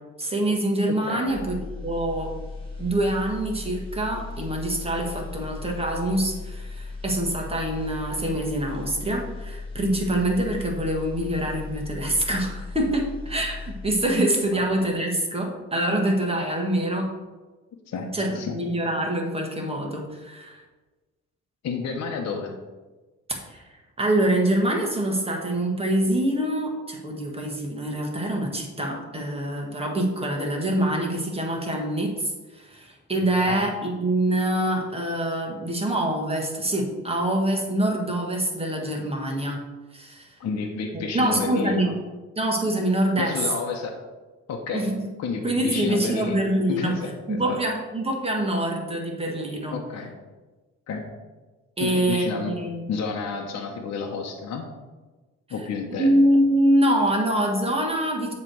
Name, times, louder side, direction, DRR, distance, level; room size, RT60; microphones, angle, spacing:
voice 1, 0.2-1.6 1.8-2.3 2.8-17.1 18.1-20.6 23.3-23.6 24.0-39.6 39.9-40.3 40.9-41.9 42.3-43.4 44.7-45.0 45.4-46.9 47.3-49.7 51.8-52.8 56.0-58.3, right 1 dB, 20° right, 1 dB, 1.5 m, -25 dB
sound 1, 1.2-14.4 14.7-14.9, left 3 dB, 20° left, 1.7 m, -37 dB
voice 2, 17.9-18.6 21.6-22.5 33.4-33.6 40.4-41.9 43.2-43.9 44.5-44.9 45.2-46.4 46.7-47.6 49.7-50.1 50.9-51.0 51.8-52.5 52.9-54.6 55.5-56.1, left 5 dB, 60° left, 1 dB, 1.0 m, -30 dB
7.5 x 3.3 x 6.2 m, 1.2 s
cardioid pair, 90°, 30 cm